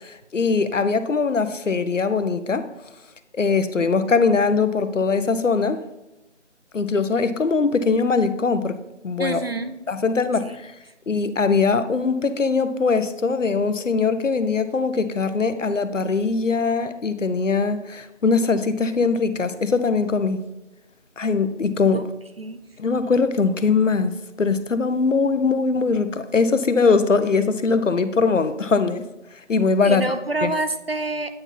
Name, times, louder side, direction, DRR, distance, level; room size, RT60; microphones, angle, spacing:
voice 1, 0.0-2.7 3.3-5.8 6.7-8.8 9.0-9.4 9.9-10.7 11.1-20.4 21.2-22.1 22.8-29.1 29.5-30.0 30.4-30.5, left 4 dB, 80° left, 11 dB, 0.7 m, -21 dB
voice 2, 9.2-9.8 10.4-10.6 21.9-22.0 22.4-22.6 29.8-31.3, right 2 dB, 55° right, 9 dB, 0.6 m, -27 dB
8.7 x 4.1 x 4.4 m, 0.96 s
figure-of-eight pair, 170°, 37 cm